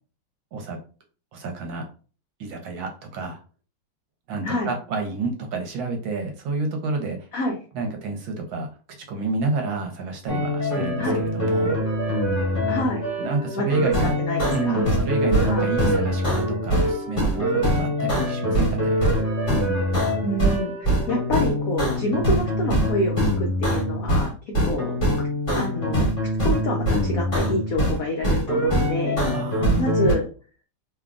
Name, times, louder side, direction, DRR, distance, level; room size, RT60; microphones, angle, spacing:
voice 1, 1.3-1.9 2.4-3.4 4.3-7.3 7.7-8.7 9.1-11.8 13.2-14.2 14.5-19.0 29.3-30.1, right 3 dB, 70° right, 3 dB, 1.4 m, -29 dB
voice 2, 4.4-4.7 7.3-7.6 11.0-11.2 12.7-13.0 13.5-14.8 15.4-15.7 20.2-24.3 24.6-26.1 26.4-29.2 29.8-30.3, left 1 dB, 65° left, 0 dB, 0.8 m, -28 dB
sound 1, 10.3-24.3 24.5-28.0 28.2-30.1, equal, 25° left, 2.1 m, -23 dB
3.6 x 3.4 x 2.4 m, 0.36 s
omnidirectional pair, 2.3 m